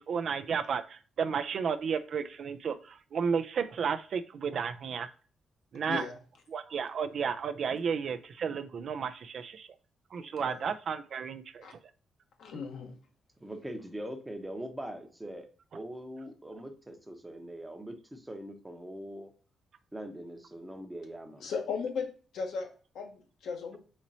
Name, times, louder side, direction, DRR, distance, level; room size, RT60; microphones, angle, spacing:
voice 1, 0.0-5.1 5.7-6.0 6.5-9.7 10.1-11.6, right 6 dB, 60° right, 11 dB, 0.3 m, -33 dB
voice 2, 5.8-6.2 10.2-10.7 11.6-11.7 12.4-13.0 21.4-22.1 22.3-23.8, left 5 dB, 75° left, 3 dB, 0.8 m, -37 dB
voice 3, 13.4-15.5 15.7-19.3 19.9-21.4, right 1 dB, 10° right, 6 dB, 0.7 m, -42 dB
4.1 x 3.0 x 2.6 m, 0.37 s
cardioid pair, 85°, 0 cm